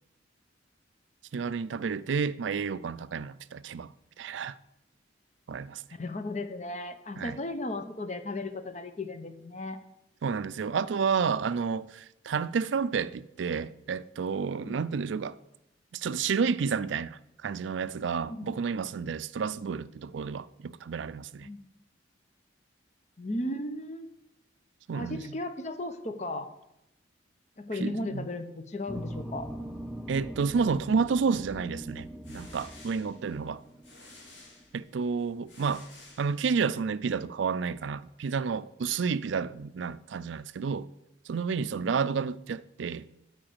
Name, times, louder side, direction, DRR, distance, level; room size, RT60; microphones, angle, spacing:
voice 1, 1.3-4.5 5.5-5.8 7.2-7.4 10.2-15.4 15.9-21.5 24.9-25.2 27.8-28.2 30.1-33.6 34.7-35.8 36.2-40.9 41.3-43.1, right 5 dB, 75° right, 0.4 m, -30 dB
voice 2, 5.9-9.8 14.6-14.8 18.3-18.5 21.4-21.6 23.2-24.1 24.9-26.5 27.6-29.5 41.8-41.9, left 2 dB, 35° left, 0.8 m, -35 dB
sound 1, 28.9-34.9, equal, ahead, 0.5 m, -42 dB
sound 2, 32.0-36.8, left 2 dB, 70° left, 2.7 m, -54 dB
8.7 x 5.2 x 7.8 m
head